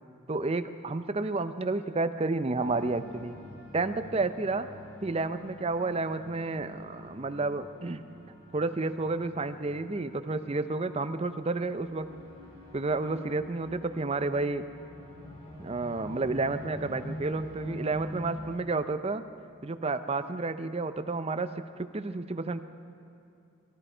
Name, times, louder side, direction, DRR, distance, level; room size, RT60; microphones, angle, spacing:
voice 1, 0.3-3.4 3.7-4.7 5.0-8.0 8.5-12.1 12.7-14.6 15.6-19.2 19.6-21.5 21.8-22.6, right 3 dB, 25° right, 10 dB, 0.5 m, -31 dB
sound 1, 2.6-18.6, left 1 dB, 25° left, 5.0 m, -46 dB
23.0 x 13.5 x 4.4 m, 2.6 s
head